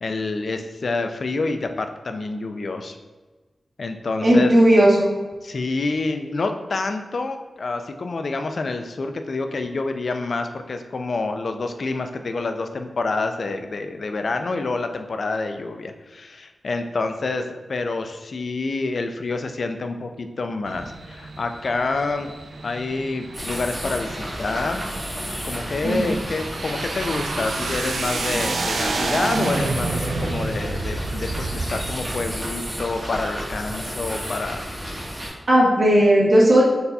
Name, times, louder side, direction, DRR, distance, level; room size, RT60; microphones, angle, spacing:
voice 1, 0.0-3.0 3.8-4.5 5.4-22.3 22.6-24.8 25.4-35.1, left 3 dB, 65° left, 6 dB, 0.3 m, -28 dB
voice 2, 4.2-5.1 25.8-26.1 35.5-36.6, right 1 dB, 50° right, -4 dB, 1.2 m, -15 dB
sound 1, 20.7-32.4, right 3 dB, 90° right, 0.4 m, -30 dB
sound 2, 23.3-35.3, equal, 15° right, 1.3 m, -32 dB
4.0 x 3.9 x 2.3 m, 1.3 s
wide cardioid pair, 75°, 0 cm